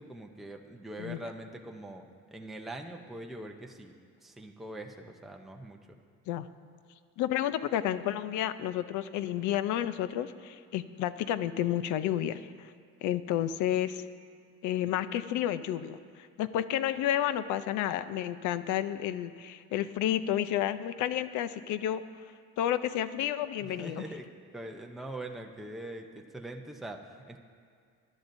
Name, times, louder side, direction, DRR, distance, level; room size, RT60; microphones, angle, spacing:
voice 1, 0.0-2.1 2.3-3.9 4.2-5.8 23.6-27.4, right 1 dB, ahead, 2 dB, 0.6 m, -43 dB
voice 2, 7.2-12.7 13.0-14.0 14.6-22.0 22.6-24.1, left 11 dB, 70° left, 13 dB, 0.6 m, -31 dB
21.0 x 11.5 x 2.6 m, 2.1 s
cardioid pair, 145°, 30 cm